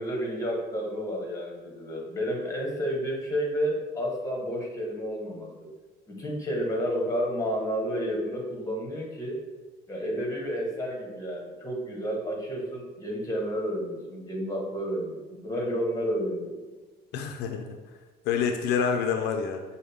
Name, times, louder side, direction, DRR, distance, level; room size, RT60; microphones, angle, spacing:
voice 1, 0.0-5.5 6.1-9.4 9.9-16.5, equal, 20° left, 0 dB, 1.2 m, -31 dB
voice 2, 17.1-17.8 18.3-19.6, left 6 dB, 80° left, 5 dB, 0.4 m, -27 dB
6.3 x 2.1 x 3.5 m, 1.2 s
cardioid pair, 110°, 17 cm